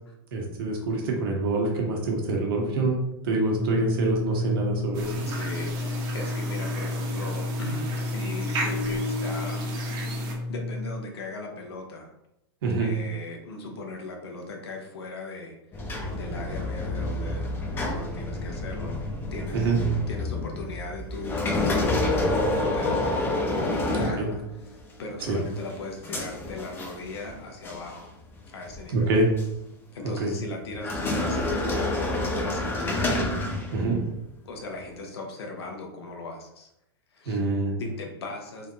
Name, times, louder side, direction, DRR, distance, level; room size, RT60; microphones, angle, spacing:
voice 1, 0.3-3.0 3.2-5.1 12.6-12.9 19.5-19.8 24.2-24.3 25.3-25.4 28.9-29.3 30.2-30.3 33.7-34.0 37.3-37.7, right 2 dB, 65° right, 0 dB, 1.2 m, -25 dB
sound 1, 3.4-11.0, left 2 dB, 45° left, 1.0 m, -31 dB
sound 2, 4.9-10.4, right 1 dB, 30° right, 0.8 m, -34 dB
voice 2, 5.2-9.7 10.2-12.1 12.8-17.5 17.8-19.0 19.3-23.3 23.7-28.1 28.5-29.1 29.9-33.1 34.4-36.7 37.1-37.4 37.8-38.7, left 2 dB, 90° left, 1 dB, 0.9 m, -38 dB
sound 3, 15.7-24.7 25.2-27.3 27.6-27.9 28.6-29.5 30.7-34.1, left 2 dB, 15° left, 0.6 m, -28 dB
3.4 x 2.2 x 3.9 m, 0.83 s
supercardioid pair, 150°, 13 cm